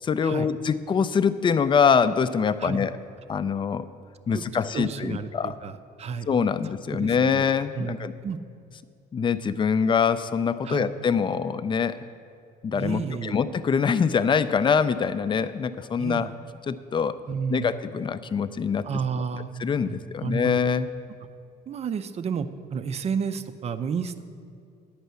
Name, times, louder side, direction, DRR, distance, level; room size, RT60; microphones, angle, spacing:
voice 1, 0.0-3.0 3.3-3.9 4.3-5.5 6.3-8.1 9.1-12.0 12.6-16.3 16.7-17.2 17.5-18.9 19.6-20.9, left 6 dB, 30° left, 13 dB, 0.4 m, -24 dB
voice 2, 4.7-6.3 6.9-7.4 7.8-8.0 8.2-8.4 10.6-10.9 12.7-13.4 16.0-16.3 17.3-17.7 18.8-19.5 19.8-20.7 21.7-24.2, right 6 dB, 40° right, 10 dB, 0.5 m, -31 dB
10.5 x 5.4 x 8.1 m, 2.3 s
cardioid pair, 110°, 17 cm